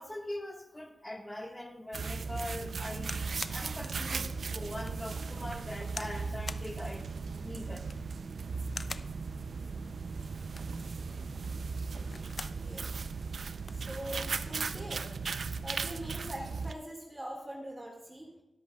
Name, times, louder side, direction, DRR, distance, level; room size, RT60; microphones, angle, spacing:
voice 1, 0.0-3.2 3.5-7.0 7.4-7.9, left 1 dB, 15° left, 1.5 m, -42 dB
sound 1, 1.9-16.7, right 4 dB, 70° right, 0.5 m, -37 dB
sound 2, 3.0-3.6 4.2-4.3 4.8-5.0 5.9-6.2 6.5-6.7 7.7-8.1 8.7-9.1 10.4-10.8 11.9-12.6 13.0-13.1 13.3-13.8 14.7-15.0, left 3 dB, 45° left, 0.4 m, -43 dB
voice 2, 12.5-12.9 13.7-15.0 15.6-18.3, right 1 dB, 20° right, 1.9 m, -42 dB
22.5 x 8.2 x 2.3 m
wide cardioid pair, 80°, 0 cm